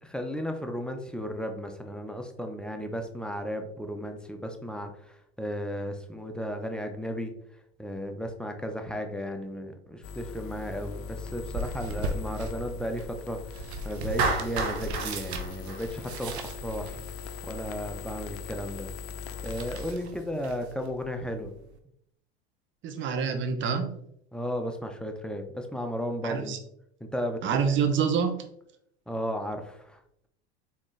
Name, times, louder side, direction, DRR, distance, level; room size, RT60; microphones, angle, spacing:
voice 1, 0.0-7.3 7.8-13.4 13.8-17.0 17.4-18.9 19.4-21.5 24.3-26.5 27.0-27.7 27.9-28.1 29.1-30.0, equal, 5° left, 4 dB, 0.6 m, -34 dB
sound 1, 10.0-19.9, left 6 dB, 45° left, 0.5 m, -41 dB
sound 2, 10.8-21.8, right 2 dB, 90° right, 0.7 m, -39 dB
Clapping, 14.2-16.5, right 4 dB, 65° right, 1.3 m, -30 dB
voice 2, 22.8-24.0 26.2-26.6 27.4-28.4, right 6 dB, 40° right, 7 dB, 0.8 m, -27 dB
4.2 x 3.6 x 3.2 m, 0.73 s
hypercardioid pair, 95°, 32 cm